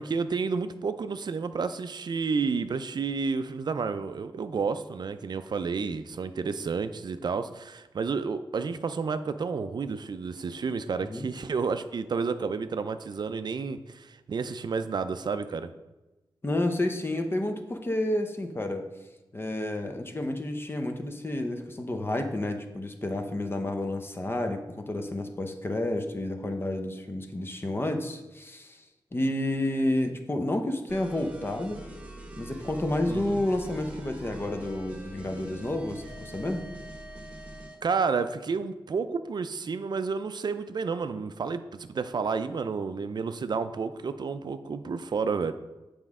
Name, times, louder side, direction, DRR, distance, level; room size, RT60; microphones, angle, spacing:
voice 1, 0.0-15.7 33.1-33.4 37.8-45.5, right 5 dB, 55° right, 11 dB, 0.4 m, -30 dB
voice 2, 16.4-18.9 19.3-28.8 29.1-31.8 32.4-36.7, left 1 dB, 25° left, 6 dB, 0.8 m, -30 dB
sound 1, 30.9-37.8, right 1 dB, 15° right, 1.3 m, -43 dB
7.7 x 5.0 x 3.6 m, 1.1 s
wide cardioid pair, 80°, 9 cm